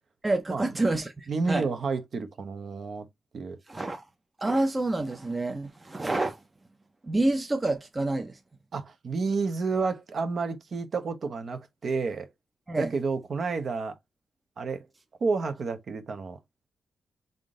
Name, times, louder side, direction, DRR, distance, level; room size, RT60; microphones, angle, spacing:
voice 1, 0.2-1.7 3.7-4.0 4.4-6.4 7.0-8.4 12.7-12.9, right 2 dB, 25° right, 0.6 m, -28 dB
voice 2, 1.3-3.1 3.3-3.6 8.7-12.3 12.8-13.9 14.6-14.9 15.2-16.4, right 4 dB, 55° right, 0.7 m, -30 dB
3.6 x 2.6 x 3.5 m
cardioid pair, 90°, 0 cm